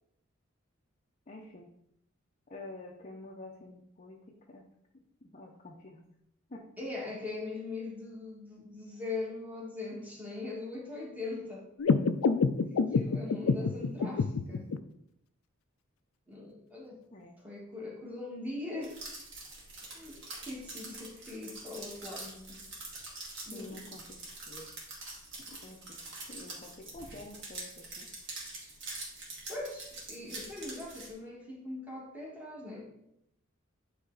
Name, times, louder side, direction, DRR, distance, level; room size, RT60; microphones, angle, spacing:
voice 1, 1.3-1.7 2.5-4.6 5.2-6.0 6.5-6.7 17.1-17.4 23.5-24.7 25.4-26.0 26.3-28.1, left 2 dB, 35° left, -1 dB, 0.6 m, -48 dB
voice 2, 6.8-11.6 12.7-14.7 16.3-16.9 17.4-19.0 19.8-22.6 23.5-24.0 29.5-32.9, left 3 dB, 10° right, -4 dB, 1.7 m, -41 dB
sound 1, 11.8-14.8, left 4 dB, 85° left, 0.4 m, -28 dB
sound 2, 18.8-31.1, right 2 dB, 60° right, 1.9 m, -45 dB
9.5 x 3.3 x 3.9 m, 0.76 s
head